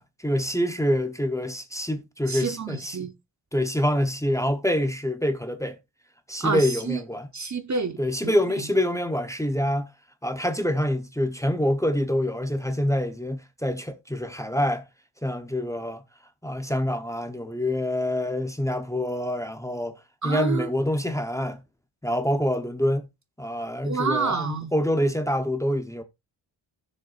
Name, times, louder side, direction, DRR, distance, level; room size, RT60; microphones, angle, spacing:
voice 1, 0.0-3.1 3.5-5.8 6.3-7.3 8.0-9.9 10.2-14.9 15.2-16.0 16.4-21.6 22.0-23.1 23.4-26.0, left 1 dB, 5° left, 0.9 m, -26 dB
voice 2, 2.3-3.1 6.4-7.0 7.3-8.0 8.2-8.3 20.2-20.7 23.8-24.7, right 5 dB, 40° right, 0.9 m, -28 dB
15.5 x 6.7 x 2.5 m
wide cardioid pair, 150°, 46 cm